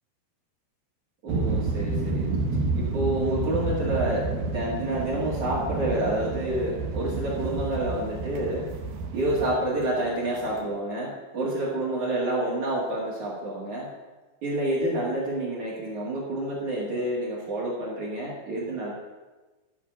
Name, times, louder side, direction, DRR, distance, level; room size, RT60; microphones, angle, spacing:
voice 1, 1.2-2.3 2.8-8.7 9.1-13.9 14.4-18.9, right 1 dB, 50° right, -5 dB, 2.4 m, -28 dB
sound 1, 1.3-10.6, right 3 dB, 80° right, 2.2 m, -30 dB
13.0 x 5.0 x 6.7 m, 1.2 s
omnidirectional pair, 5.5 m